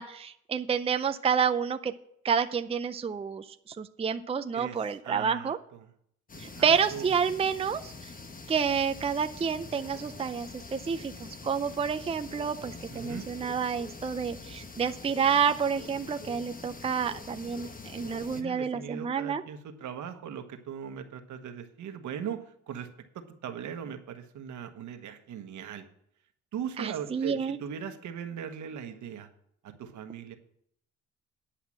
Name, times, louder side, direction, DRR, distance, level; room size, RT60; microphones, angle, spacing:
voice 1, 0.0-1.9 2.2-5.6 6.4-7.9 8.5-19.4 26.8-27.6, right 6 dB, 20° right, 9 dB, 0.5 m, -29 dB
voice 2, 4.5-5.9 6.5-7.1 12.9-13.2 18.3-22.9 23.1-25.8 26.5-29.3 29.6-30.4, right 8 dB, 75° right, 7 dB, 1.3 m, -39 dB
sound 1, 6.3-18.4, left 3 dB, 30° left, 1.2 m, -45 dB
10.0 x 5.7 x 7.4 m, 0.69 s
cardioid pair, 90°, 30 cm